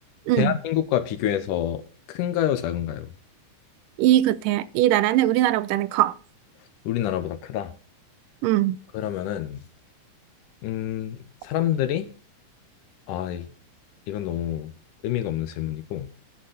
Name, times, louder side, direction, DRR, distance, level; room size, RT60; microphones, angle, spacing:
voice 1, 0.4-1.8 2.1-3.1 6.9-7.7 8.9-9.6 10.6-11.2 11.4-12.1 13.1-13.5 14.1-14.7 15.0-16.1, left 11 dB, 85° left, 2.5 m, -27 dB
voice 2, 4.0-6.1 8.4-8.8, right 14 dB, 90° right, 2.3 m, -21 dB
14.0 x 10.0 x 4.1 m
omnidirectional pair, 3.7 m